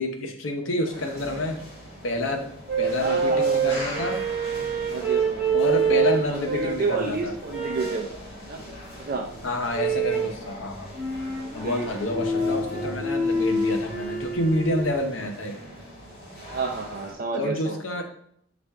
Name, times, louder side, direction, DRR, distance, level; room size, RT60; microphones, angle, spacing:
voice 1, 0.0-1.6 2.0-2.4 2.8-4.2 5.5-7.3 9.4-10.9 11.5-15.6 17.3-18.0, left 1 dB, 80° left, 4 dB, 0.7 m, -28 dB
sound 1, 0.9-17.1, equal, 30° left, 1.8 m, -41 dB
sound 2, 2.7-6.9 7.5-8.1 9.7-10.4 10.9-14.9, right 4 dB, ahead, 1.4 m, -26 dB
voice 2, 3.0-3.8 4.9-5.5 5.9-8.1 8.5-8.6 9.0-9.3 11.3-11.9 16.5-17.8, right 4 dB, 50° right, 0 dB, 0.4 m, -30 dB
5.4 x 2.5 x 3.4 m, 0.67 s
head